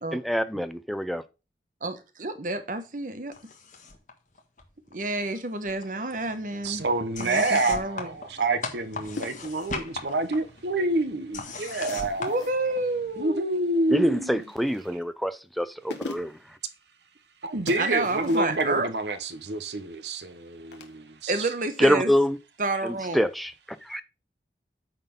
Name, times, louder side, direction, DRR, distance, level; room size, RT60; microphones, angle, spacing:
voice 1, 0.1-1.2 13.9-16.4 21.8-22.4 22.8-23.5 23.8-24.0, equal, ahead, 0.5 m, -25 dB
voice 2, 1.8-3.3 4.9-6.8 7.2-8.1 12.2-13.6 17.8-18.9 21.3-22.1 22.6-23.2, right 2 dB, 50° right, 1.1 m, -29 dB
sound 1, 3.3-4.1 4.4-5.4 5.7-13.2, left 3 dB, 45° left, 1.5 m, -39 dB
voice 3, 6.6-12.4 13.2-14.4 17.4-21.5, right 2 dB, 75° right, 1.1 m, -28 dB
sound 2, 9.2-9.8 11.9-12.6 14.4-15.0 15.6-15.7 15.9-16.5 17.7-18.7 20.7-20.9, left 2 dB, 80° left, 1.4 m, -40 dB
9.0 x 4.2 x 5.3 m
head